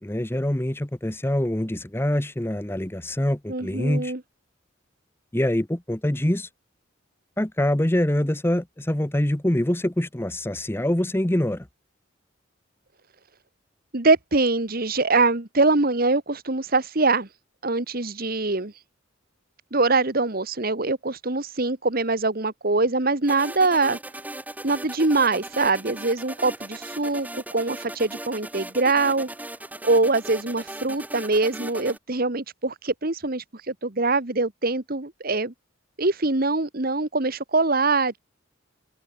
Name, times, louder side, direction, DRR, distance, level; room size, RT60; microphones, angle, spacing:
voice 1, 0.0-4.1 5.3-6.5 7.4-11.7, left 1 dB, 10° left, 0.9 m, -25 dB
voice 2, 3.5-4.2 13.9-17.3 17.6-18.7 19.7-24.0 24.6-29.3 29.8-35.5 36.0-38.2, right 3 dB, 45° right, 1.6 m, -23 dB
sound 1, 23.3-32.0, right 1 dB, 10° right, 1.6 m, -38 dB
open air
head